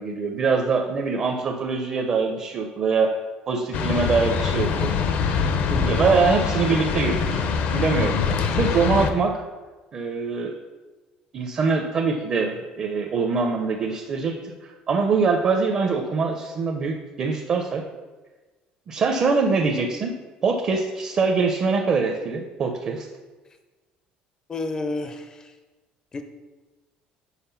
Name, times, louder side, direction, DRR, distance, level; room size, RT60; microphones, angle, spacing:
voice 1, 0.0-3.1 3.5-4.9 5.8-7.4 7.7-8.2 8.6-9.3 9.9-10.5 11.3-17.8 18.9-20.1 20.4-23.1, right 4 dB, 35° right, 2 dB, 0.6 m, -23 dB
sound 1, 3.7-9.1, left 6 dB, 60° left, 0.6 m, -24 dB
voice 2, 5.7-6.0 24.5-25.5 26.1-26.2, left 3 dB, 20° left, 6 dB, 0.5 m, -30 dB
5.7 x 4.3 x 5.6 m, 1.3 s
cardioid pair, 145°, 3 cm